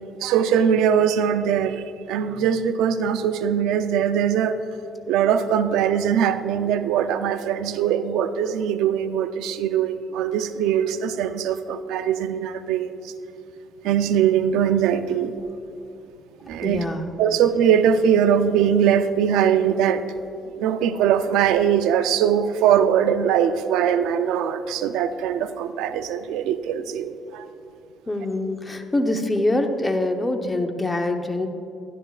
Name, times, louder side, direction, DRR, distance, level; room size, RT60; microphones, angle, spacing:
voice 1, 0.2-4.6 5.1-13.1 13.8-15.3 16.5-16.8 17.2-20.0 20.6-27.5, right 8 dB, 85° right, 10 dB, 0.4 m, -21 dB
voice 2, 16.6-17.1 28.1-31.5, left 2 dB, 15° left, 5 dB, 0.8 m, -24 dB
12.5 x 11.5 x 2.4 m, 2.6 s
cardioid pair, 100°, 0 cm